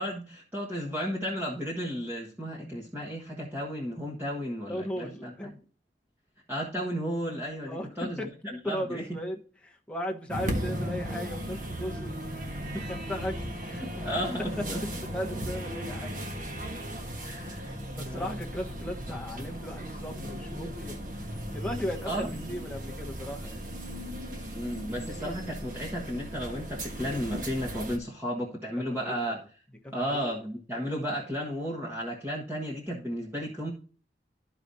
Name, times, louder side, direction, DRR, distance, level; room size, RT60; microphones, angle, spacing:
voice 1, 0.0-5.3 6.5-8.2 8.6-9.2 14.0-14.8 15.4-15.5 17.2-18.3 22.0-22.6 24.5-29.4 29.9-33.7, equal, 10° right, 1.3 m, -34 dB
voice 2, 4.7-5.6 7.7-8.3 8.6-12.2 12.7-13.4 13.7-14.1 14.6-14.7 15.0-16.2 17.2-17.5 18.0-21.0 21.5-23.6 28.9-29.3 29.8-30.3, equal, 5° left, 1.2 m, -37 dB
sound 1, 10.3-28.0, equal, 50° right, 1.4 m, -37 dB
13.0 x 5.0 x 2.7 m
head